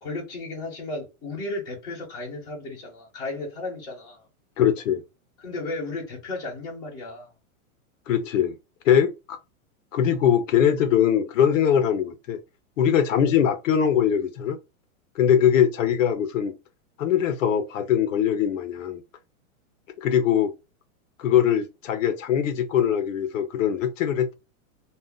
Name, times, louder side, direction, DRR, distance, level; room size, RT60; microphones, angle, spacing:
voice 1, 0.0-4.2 5.4-7.3, left 2 dB, 10° left, 1.0 m, -34 dB
voice 2, 4.6-5.0 8.1-8.6 8.9-9.4 9.9-12.4 12.8-14.6 15.2-16.5 17.0-19.0 20.0-20.5 21.2-24.3, left 9 dB, 65° left, 0.5 m, -22 dB
2.3 x 2.1 x 3.6 m
supercardioid pair, 175°, 43 cm